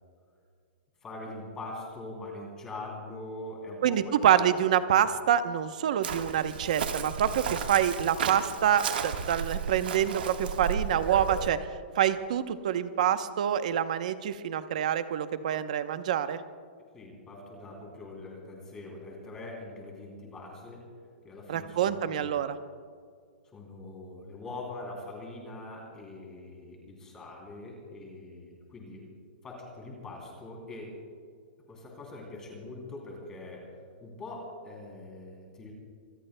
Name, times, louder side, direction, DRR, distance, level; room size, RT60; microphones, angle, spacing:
voice 1, 1.0-4.2 16.9-20.8 21.2-22.4 23.5-29.1 29.4-30.9 31.7-33.7 34.0-35.7, left 2 dB, 10° left, -1 dB, 3.0 m, -43 dB
voice 2, 3.8-11.6 11.9-16.4 21.5-22.6, right 10 dB, 45° right, 11 dB, 0.8 m, -26 dB
Chirp tweet, 6.0-11.5, right 6 dB, 65° right, 1.4 m, -34 dB
26.0 x 20.5 x 2.2 m, 2.1 s
hypercardioid pair, 180°, 5 cm